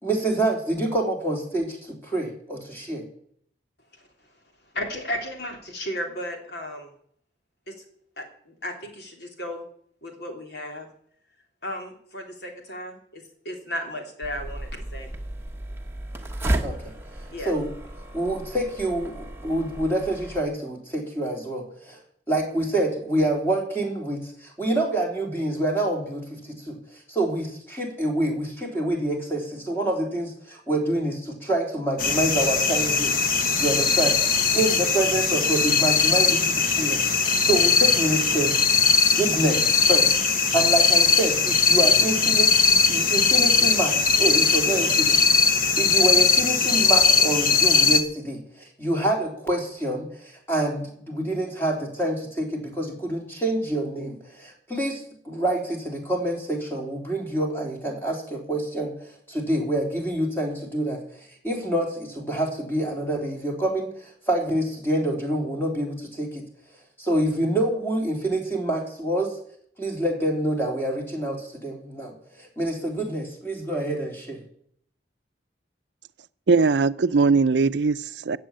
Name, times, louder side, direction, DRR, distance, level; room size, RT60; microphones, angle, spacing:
voice 1, 0.0-3.0 16.6-16.8 17.5-17.7 18.1-22.0 22.3-26.8 27.1-38.6 39.1-40.1 40.5-45.3 45.8-61.0 61.4-66.4 67.0-69.3 69.8-74.4, right 1 dB, 10° left, 0 dB, 3.5 m, -27 dB
voice 2, 4.7-6.9 7.7-7.8 8.2-9.6 10.0-10.9 11.6-15.1 17.3-17.5, left 1 dB, 65° left, 3 dB, 3.3 m, -34 dB
sound 1, 14.2-20.4, right 1 dB, 15° right, 1.2 m, -33 dB
sound 2, 32.0-48.0, left 5 dB, 50° left, 1.3 m, -20 dB
voice 3, 76.5-78.4, right 4 dB, 75° right, 16 dB, 0.5 m, -20 dB
15.5 x 7.5 x 8.7 m, 0.64 s
head